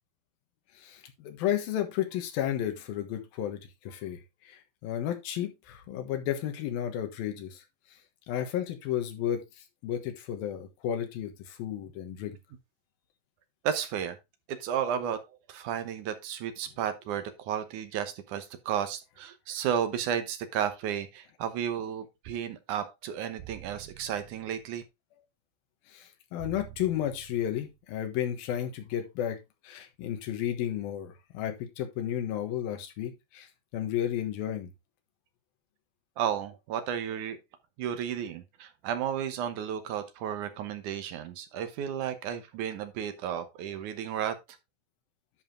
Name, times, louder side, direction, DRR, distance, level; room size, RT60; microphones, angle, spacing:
voice 1, 0.8-4.2 4.4-7.6 8.3-9.4 9.8-12.4 25.9-29.4 29.6-33.5 33.7-34.7, left 11 dB, 80° left, 3.1 m, -33 dB
voice 2, 13.6-14.2 14.5-24.8 36.2-37.4 37.8-44.4, right 9 dB, 70° right, 2.2 m, -33 dB
sound 1, 23.4-24.8 26.4-27.8, right 15 dB, 85° right, 2.7 m, -49 dB
11.0 x 4.8 x 3.7 m
omnidirectional pair, 4.3 m